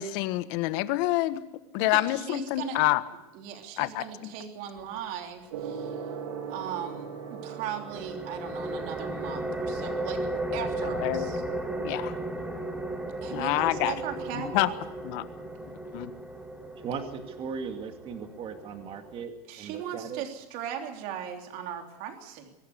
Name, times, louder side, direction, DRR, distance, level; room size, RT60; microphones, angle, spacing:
voice 1, 0.0-1.4 1.7-3.0 3.8-4.3 10.9-11.3 11.8-12.1 13.3-13.9 14.5-14.7 15.0-15.2 15.9-16.1, left 17 dB, 50° left, 13 dB, 1.4 m, -27 dB
voice 2, 1.8-2.8 3.3-6.0 6.5-10.2 10.5-11.4 13.2-14.8 19.5-22.5, right 9 dB, 45° right, 4 dB, 3.4 m, -38 dB
Gong, 5.5-17.5, right 6 dB, 65° right, 3.4 m, -43 dB
sound 1, 7.9-19.3, right 1 dB, 5° right, 2.1 m, -35 dB
voice 3, 16.8-20.2, right 6 dB, 30° right, 6 dB, 2.3 m, -38 dB
24.0 x 11.5 x 9.6 m, 0.94 s
supercardioid pair, 145°, 19 cm